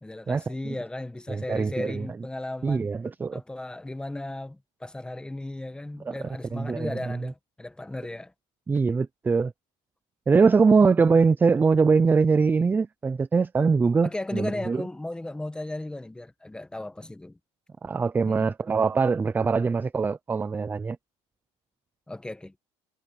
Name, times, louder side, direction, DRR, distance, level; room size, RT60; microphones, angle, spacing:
voice 1, 0.0-2.9 3.3-8.3 10.8-10.9 14.0-17.4 18.2-18.5 22.1-22.5, left 2 dB, 5° left, 1.3 m, -36 dB
voice 2, 1.3-2.1 2.6-3.4 6.1-6.2 6.5-7.2 8.7-9.5 10.3-14.8 17.8-21.0, right 4 dB, 15° right, 0.5 m, -22 dB
cardioid pair, 140°, 13 cm